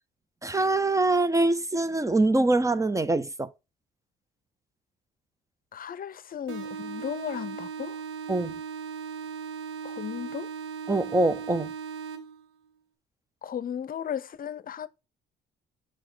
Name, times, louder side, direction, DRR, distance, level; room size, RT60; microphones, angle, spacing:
voice 1, 0.4-3.5 8.3-8.6 10.9-11.7, right 2 dB, 15° right, 0.6 m, -24 dB
voice 2, 5.7-8.0 9.8-10.5 13.4-14.9, left 9 dB, 45° left, 0.7 m, -35 dB
sound 1, 6.5-12.5, right 6 dB, 85° right, 1.6 m, -38 dB
5.8 x 4.8 x 6.0 m
supercardioid pair, 80°, 20 cm